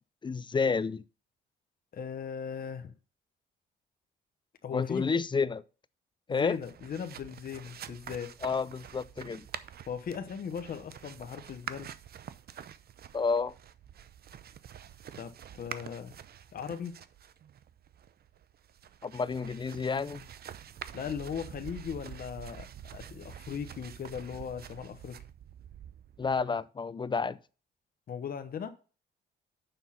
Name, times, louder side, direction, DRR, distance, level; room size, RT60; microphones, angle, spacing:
voice 1, 0.2-1.0 4.7-5.6 6.3-6.6 8.4-9.5 13.1-13.5 19.0-20.3 26.2-27.4, left 5 dB, 25° left, 0.4 m, -30 dB
voice 2, 1.9-2.9 4.6-5.1 6.3-8.4 9.9-11.9 15.1-16.1 16.5-16.9 20.9-25.2 28.1-28.7, left 7 dB, 45° left, 1.0 m, -38 dB
sound 1, 6.5-26.4, right 9 dB, 50° right, 0.7 m, -47 dB
7.1 x 5.7 x 5.7 m
cardioid pair, 90°, 20 cm